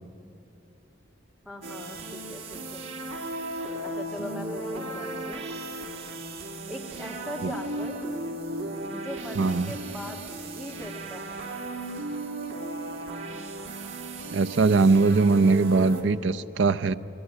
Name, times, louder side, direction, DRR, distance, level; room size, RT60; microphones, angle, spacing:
voice 1, 1.4-2.9 3.8-5.4 6.7-8.0 8.9-11.4, equal, ahead, 0 dB, 2.2 m, -40 dB
sound 1, 1.6-16.0, right 2 dB, 85° right, 2.8 m, -36 dB
voice 2, 9.4-9.7 14.3-16.9, right 4 dB, 70° right, 13 dB, 0.6 m, -21 dB
22.0 x 18.5 x 9.6 m, 2.8 s
head